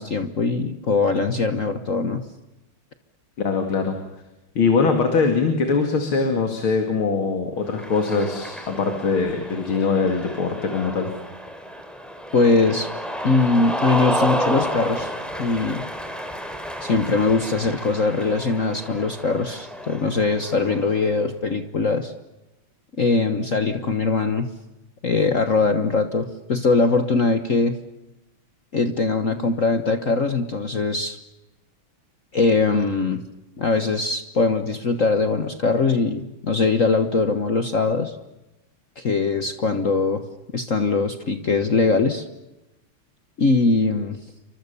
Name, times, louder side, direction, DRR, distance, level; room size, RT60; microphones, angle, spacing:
voice 1, 0.0-2.2 12.3-12.9 13.2-15.1 15.4-15.9 16.8-22.1 23.0-24.5 25.0-27.8 28.7-31.2 32.3-33.2 33.6-38.1 39.0-40.2 40.5-42.2 43.4-44.2, left 3 dB, 45° left, 8 dB, 1.4 m, -21 dB
voice 2, 3.4-4.0 4.5-11.1, left 4 dB, 70° left, 5 dB, 3.2 m, -22 dB
Cheering, 7.7-21.1, equal, ahead, 3.8 m, -31 dB
29.5 x 25.0 x 7.0 m, 0.98 s
omnidirectional pair, 2.3 m